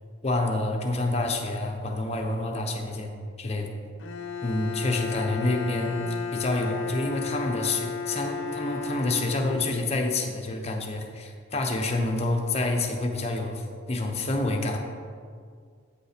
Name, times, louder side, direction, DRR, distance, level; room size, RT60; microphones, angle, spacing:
voice 1, 0.2-3.1 3.4-3.7 4.4-6.0 6.3-14.8, left 2 dB, 35° left, 2 dB, 0.9 m, -28 dB
Bowed string instrument, 4.0-10.2, left 6 dB, 65° left, 0.7 m, -34 dB
8.6 x 5.3 x 5.1 m, 2.1 s
head